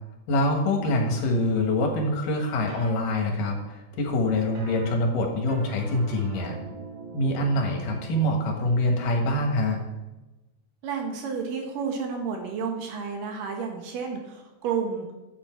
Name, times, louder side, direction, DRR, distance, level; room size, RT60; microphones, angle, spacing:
voice 1, 0.3-6.6 7.1-9.8, left 1 dB, 80° left, 2 dB, 3.3 m, -25 dB
sound 1, 0.8-1.2 2.7-2.9 4.5-4.9 5.5-8.3, right 4 dB, 50° right, 1.5 m, -42 dB
voice 2, 10.8-15.1, right 6 dB, 90° right, 2 dB, 3.2 m, -31 dB
11.5 x 8.1 x 4.6 m, 1.0 s
omnidirectional pair, 3.7 m